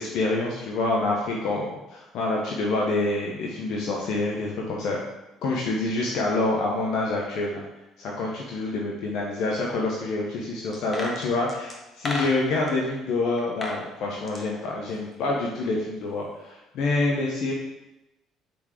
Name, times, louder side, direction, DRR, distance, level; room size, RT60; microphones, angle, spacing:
voice 1, 0.0-5.0 5.4-7.7 8.0-17.5, left 2 dB, 70° left, -2 dB, 0.9 m, -27 dB
sound 1, 10.7-12.7 13.4-13.8 14.1-15.5 15.8-15.9, left 2 dB, 30° left, 1.3 m, -34 dB
5.1 x 3.8 x 4.9 m, 0.96 s
supercardioid pair, 70°, 0 cm